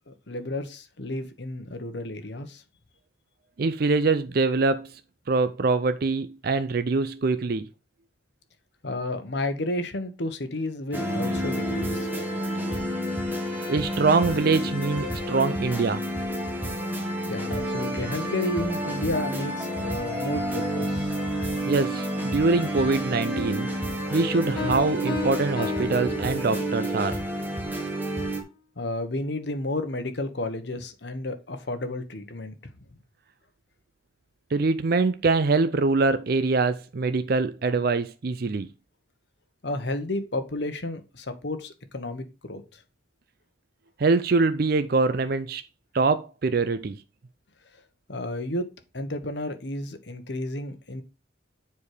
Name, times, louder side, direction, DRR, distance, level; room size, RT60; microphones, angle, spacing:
voice 1, 0.1-2.6 8.8-12.1 17.3-21.1 28.8-32.5 39.6-42.8 48.1-48.7 48.9-51.0, left 2 dB, 60° left, 1.1 m, -32 dB
voice 2, 3.6-4.9 5.3-7.7 13.7-16.0 21.7-23.7 24.1-27.2 34.5-38.7 44.0-45.6 45.9-47.0, right 3 dB, 50° right, 0.4 m, -24 dB
sound 1, 10.9-28.4, equal, 10° right, 1.5 m, -29 dB
Piano, 24.6-26.9, left 7 dB, 20° left, 2.0 m, -33 dB
7.3 x 4.7 x 4.8 m
head